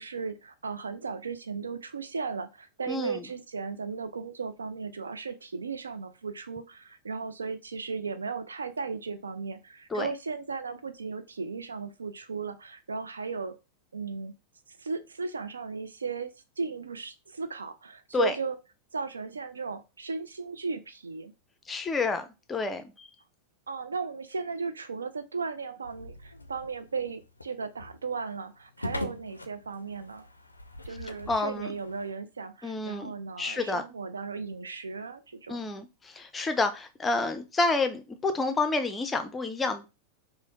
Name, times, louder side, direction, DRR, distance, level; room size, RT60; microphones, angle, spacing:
voice 1, 0.0-13.5 13.9-14.3 14.8-18.6 18.9-21.3 23.7-30.3 30.8-35.6, right 5 dB, 75° right, 10 dB, 0.3 m, -36 dB
voice 2, 2.9-3.2 9.9-10.1 18.1-18.4 21.7-23.1 31.3-31.7 32.6-33.1 33.4-33.8 35.5-39.9, left 3 dB, 15° left, 8 dB, 0.4 m, -29 dB
sound 1, 25.8-32.1, left 2 dB, 80° left, 0.3 m, -42 dB
4.8 x 2.0 x 2.5 m, 0.28 s
figure-of-eight pair, 90°, 0 cm